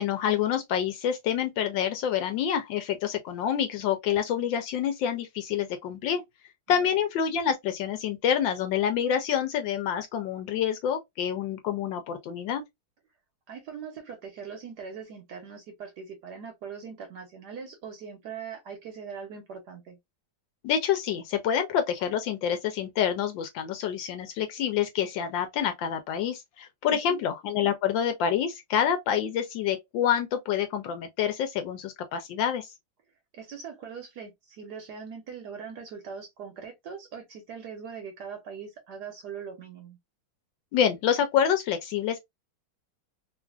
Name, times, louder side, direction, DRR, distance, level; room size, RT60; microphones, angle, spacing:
voice 1, 0.0-6.2 6.7-12.6 20.6-32.7 40.7-42.2, left 8 dB, 75° left, 1.1 m, -27 dB
voice 2, 13.5-20.0 26.9-27.2 33.3-40.0, right 6 dB, 65° right, 1.0 m, -41 dB
3.2 x 2.4 x 2.2 m
omnidirectional pair, 2.3 m